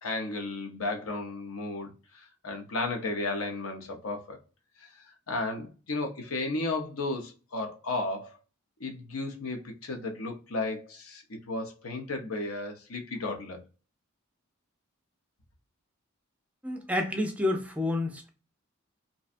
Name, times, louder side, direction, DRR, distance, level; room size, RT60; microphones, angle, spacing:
voice 1, 0.0-4.4 4.8-8.4 8.8-13.6, left 2 dB, 80° left, 0.7 m, -34 dB
voice 2, 16.6-18.3, left 2 dB, 5° right, 0.4 m, -29 dB
2.6 x 2.2 x 2.5 m
head